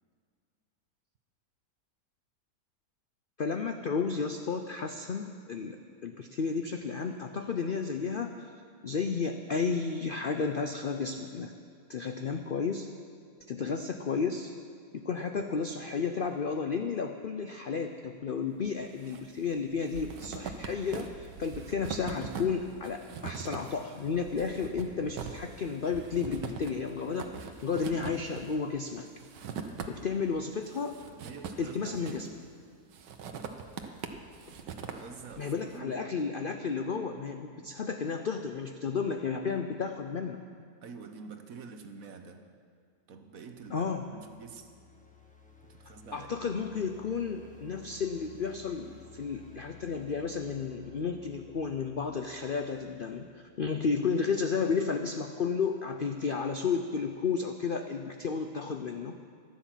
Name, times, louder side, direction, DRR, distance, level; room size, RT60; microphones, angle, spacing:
voice 1, 3.4-8.3 8.8-11.5 11.9-12.9 13.5-14.5 14.9-29.1 29.9-31.0 31.6-32.3 35.4-40.4 43.7-44.1 46.1-59.2, left 5 dB, 85° left, 6 dB, 0.4 m, -32 dB
sound 1, 18.6-19.2 19.5-30.3 30.6-32.5 32.9-35.6, right 6 dB, 90° right, 1.6 m, -42 dB
voice 2, 31.1-32.3 34.8-36.1 40.8-42.5 43.1-44.7 45.7-46.5, right 5 dB, 60° right, 7 dB, 1.3 m, -47 dB
sound 2, 43.4-53.5, left 5 dB, 5° left, 1.1 m, -55 dB
14.0 x 10.5 x 7.4 m, 2.2 s
omnidirectional pair, 1.8 m